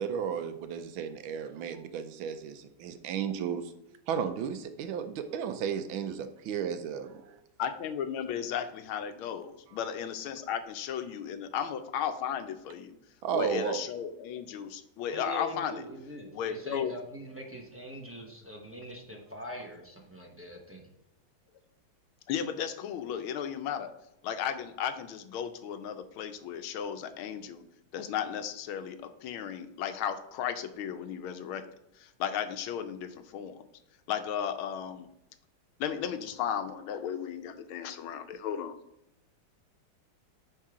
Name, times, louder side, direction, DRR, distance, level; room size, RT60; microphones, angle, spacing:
voice 1, 0.0-3.7 4.1-7.4 13.2-13.8, right 7 dB, 80° right, 9 dB, 1.5 m, -34 dB
voice 2, 7.6-12.9 13.3-15.8 16.3-16.9 22.3-23.9 24.2-27.6 27.9-31.6 32.0-33.6 34.1-35.1 35.8-38.8, left 8 dB, 85° left, 10 dB, 1.5 m, -35 dB
voice 3, 15.1-20.8, equal, 10° right, -1 dB, 0.6 m, -43 dB
9.3 x 3.6 x 4.9 m, 0.82 s
omnidirectional pair, 2.2 m